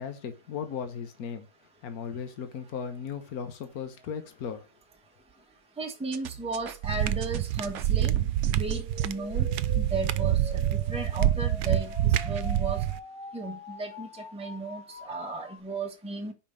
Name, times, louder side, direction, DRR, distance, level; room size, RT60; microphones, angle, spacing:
voice 1, 0.0-1.5 1.8-4.7, left 7 dB, 70° left, 1.5 m, -36 dB
voice 2, 5.8-8.1 8.5-9.5 9.8-10.6 10.9-12.8 13.3-16.3, right 3 dB, 5° right, 1.1 m, -35 dB
sound 1, 6.1-9.1, right 9 dB, 60° right, 0.9 m, -43 dB
sound 2, 6.8-13.0, right 12 dB, 85° right, 1.1 m, -26 dB
sound 3, 8.6-15.6, left 4 dB, 30° left, 0.6 m, -44 dB
5.3 x 5.1 x 6.5 m
omnidirectional pair, 1.7 m